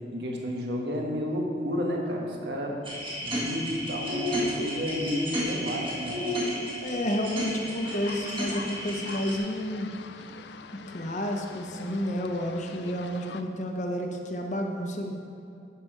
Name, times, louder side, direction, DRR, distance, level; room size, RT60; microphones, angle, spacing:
voice 1, 0.1-2.8 3.2-6.2, equal, 65° right, 0 dB, 1.3 m, -31 dB
sound 1, 2.8-9.4, equal, 30° right, 2.0 m, -32 dB
voice 2, 6.8-9.9 10.9-15.1, equal, 40° left, 3 dB, 0.9 m, -30 dB
sound 2, 7.8-13.4, left 5 dB, 70° left, 0.4 m, -44 dB
10.0 x 6.0 x 4.9 m, 2.6 s
head